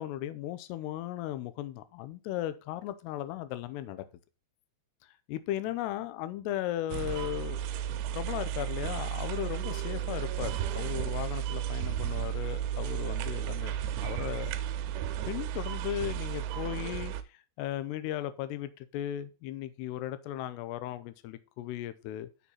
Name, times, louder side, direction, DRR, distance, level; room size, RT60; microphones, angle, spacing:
voice 1, 0.0-4.0 5.3-14.5 15.3-22.3, left 13 dB, 85° left, 2.6 m, -36 dB
sound 1, 6.9-17.2, right 10 dB, 85° right, 2.7 m, -33 dB
7.1 x 7.0 x 4.3 m
omnidirectional pair, 5.2 m